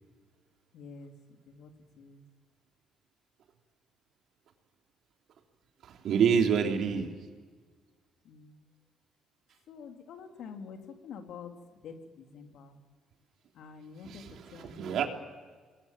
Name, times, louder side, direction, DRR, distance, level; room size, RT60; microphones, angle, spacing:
voice 1, 0.7-1.1 1.5-1.7 2.0-2.2 8.2-8.6 9.7-10.8 11.0-11.5 11.8-12.8 13.5-14.2 14.5-15.1, left 6 dB, 70° left, 4 dB, 3.4 m, -47 dB
voice 2, 5.8-7.1 14.0-15.1, right 7 dB, 65° right, 3 dB, 3.5 m, -27 dB
26.5 x 21.5 x 7.6 m, 1.5 s
cardioid pair, 105°, 0 cm